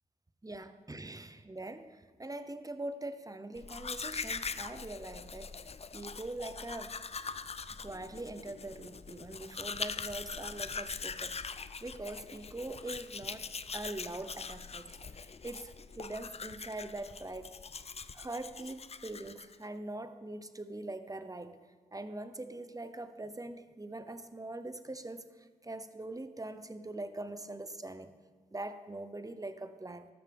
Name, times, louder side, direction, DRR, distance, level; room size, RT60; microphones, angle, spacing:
voice 1, 0.4-5.5 5.9-7.0 7.7-13.5 13.7-14.9 15.2-17.5 18.1-21.6 21.9-25.3 25.6-28.1 28.5-30.1, right 2 dB, 20° right, 10 dB, 0.9 m, -42 dB
Domestic sounds home sounds, 3.6-19.7, left 5 dB, 40° left, 0.5 m, -42 dB
13.0 x 12.5 x 3.6 m, 1.4 s
cardioid pair, 45°, 16 cm